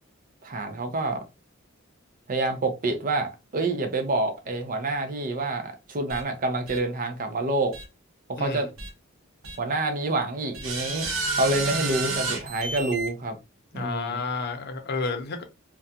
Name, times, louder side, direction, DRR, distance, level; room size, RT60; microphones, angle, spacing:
voice 1, 0.4-1.2 2.3-7.8 8.3-8.7 9.6-11.1 11.4-13.4 13.7-14.2, right 2 dB, 45° right, 0.5 m, -27 dB
sound 1, 6.1-6.2 6.7-6.8 7.7-7.8 8.8-8.9 9.4-9.6 10.5-13.1, right 3 dB, 80° right, 0.8 m, -30 dB
voice 2, 8.4-8.7 13.7-15.4, left 4 dB, 50° left, 0.6 m, -31 dB
2.4 x 2.2 x 2.6 m
head